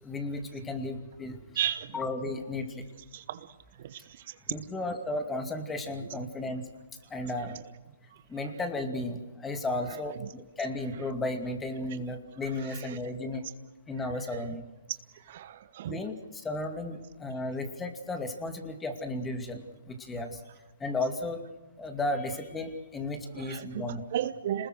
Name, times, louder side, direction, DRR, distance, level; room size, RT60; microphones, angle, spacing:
voice 1, 0.0-1.4 1.9-2.8 4.5-6.6 7.1-7.6 8.3-13.4 13.9-14.6 15.9-20.4 20.8-21.4 21.8-24.0, left 2 dB, 10° left, 6 dB, 2.5 m, -34 dB
voice 2, 1.6-1.9 3.1-3.4 3.8-4.0 15.3-16.0 23.4-24.7, right 11 dB, 50° right, 13 dB, 1.0 m, -33 dB
27.5 x 20.5 x 6.5 m, 1.1 s
hypercardioid pair, 140°, 0 cm